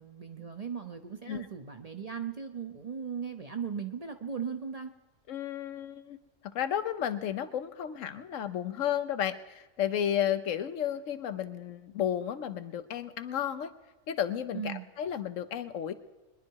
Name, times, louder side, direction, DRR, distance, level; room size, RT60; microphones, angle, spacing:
voice 1, 0.0-4.9 14.5-14.9, right 7 dB, 40° right, 6 dB, 0.6 m, -37 dB
voice 2, 5.3-6.2 6.5-13.7 14.1-15.9, left 10 dB, 80° left, 11 dB, 1.1 m, -32 dB
22.0 x 10.5 x 4.6 m, 1.2 s
omnidirectional pair, 1.3 m